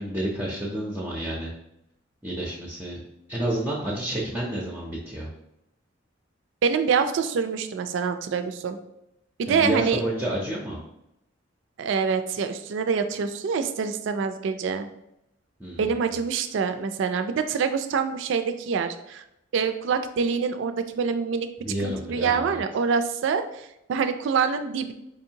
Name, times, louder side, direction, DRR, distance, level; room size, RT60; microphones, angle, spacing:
voice 1, 0.0-1.5 2.2-3.0 3.3-5.3 9.5-10.8 15.6-15.8 21.6-22.6, right 1 dB, 10° right, -4 dB, 0.5 m, -29 dB
voice 2, 6.6-8.8 9.4-10.0 11.8-14.9 15.8-19.2 19.5-21.5 21.8-24.9, right 6 dB, 65° right, 9 dB, 0.3 m, -25 dB
4.9 x 2.6 x 2.8 m, 0.84 s
head